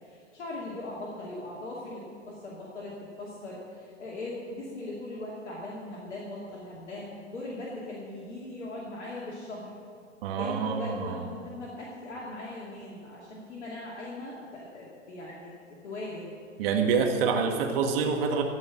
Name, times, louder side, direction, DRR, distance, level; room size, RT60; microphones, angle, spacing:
voice 1, 0.0-9.7 10.3-15.5 15.8-16.3, left 2 dB, 65° left, -5 dB, 2.6 m, -39 dB
voice 2, 10.2-11.2 16.6-18.4, right 5 dB, 50° right, 3 dB, 1.8 m, -26 dB
15.5 x 5.7 x 8.5 m, 2.2 s
figure-of-eight pair, 100°, 37 cm